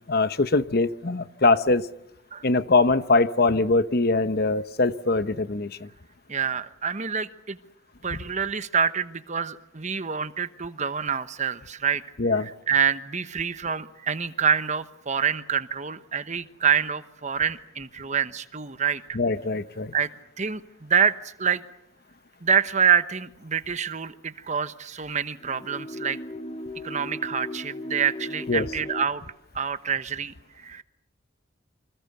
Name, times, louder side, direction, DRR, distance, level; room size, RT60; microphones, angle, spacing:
voice 1, 0.1-1.9 2.4-5.9 12.2-12.5 19.1-19.9 28.5-28.7, left 3 dB, 50° left, 13 dB, 0.9 m, -22 dB
voice 2, 6.3-7.6 8.0-12.0 12.3-19.0 19.9-20.1 20.4-21.6 22.4-26.2 26.8-29.2 29.5-30.8, right 7 dB, 35° right, 12 dB, 1.1 m, -26 dB
sound 1, 25.4-29.1, left 1 dB, 30° left, 1.8 m, -37 dB
28.5 x 26.0 x 6.8 m, 0.77 s
head